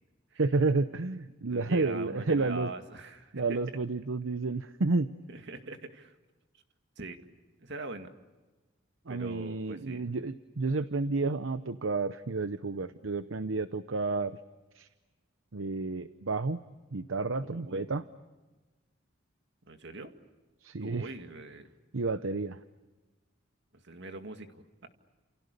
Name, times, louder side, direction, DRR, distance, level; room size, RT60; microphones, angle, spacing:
voice 1, 0.4-2.7 3.3-5.1 9.1-14.4 14.7-14.9 15.5-16.6 16.9-18.0 20.6-21.1 21.9-22.6, right 3 dB, 75° right, 12 dB, 0.8 m, -31 dB
voice 2, 1.5-3.6 5.3-6.1 7.0-7.2 7.6-8.1 9.1-10.0 17.4-17.8 19.7-20.1 20.8-21.7 23.8-24.9, right 2 dB, 60° right, 7 dB, 2.1 m, -42 dB
29.5 x 28.5 x 6.8 m, 1.2 s
head